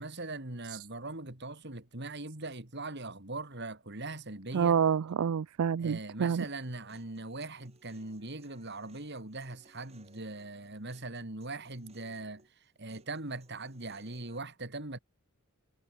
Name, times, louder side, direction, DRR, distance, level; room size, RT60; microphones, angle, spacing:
voice 1, 0.0-4.8 5.8-12.4 12.8-15.0, right 2 dB, 55° right, 3.2 m, -41 dB
voice 2, 4.5-6.4, right 7 dB, 80° right, 0.4 m, -28 dB
Human voice, 6.4-14.4, right 3 dB, 30° right, 5.4 m, -64 dB
head